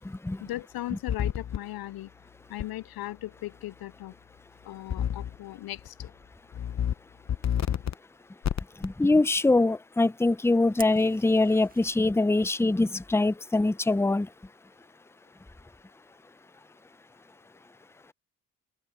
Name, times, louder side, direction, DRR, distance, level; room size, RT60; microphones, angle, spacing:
voice 1, 0.4-2.1 2.5-4.1 4.6-6.1, left 16 dB, 60° left, 0.7 m, -37 dB
sound 1, 1.1-1.6 2.6-2.7 4.9-5.4 5.8-6.1 6.5-6.9 7.3-7.9 8.4-8.9, left 9 dB, 40° left, 0.9 m, -29 dB
voice 2, 8.8-14.3, left 2 dB, 5° left, 0.7 m, -23 dB
Fire, 10.8-11.9, right 3 dB, 20° right, 1.7 m, -44 dB
open air
hypercardioid pair, 45°, 41 cm